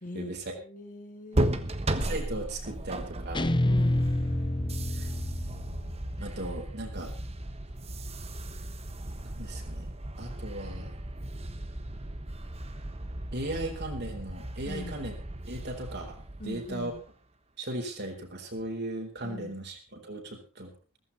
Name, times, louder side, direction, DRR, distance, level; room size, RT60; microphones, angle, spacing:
voice 1, 0.0-1.7 3.6-4.2 14.6-15.0 16.4-17.0 19.2-19.6, left 1 dB, 40° left, 4 dB, 2.6 m, -41 dB
sound 1, 1.3-17.1, right 1 dB, 30° right, 1.2 m, -35 dB
voice 2, 1.9-3.6 5.0-5.1 6.2-7.1 9.2-9.9 10.2-10.9 13.3-15.1 15.5-16.9 17.6-20.7, right 1 dB, 50° right, 3 dB, 4.2 m, -37 dB
Guitar, 3.3-6.6, left 1 dB, 20° left, 0.7 m, -29 dB
16.0 x 15.0 x 4.2 m, 0.35 s
head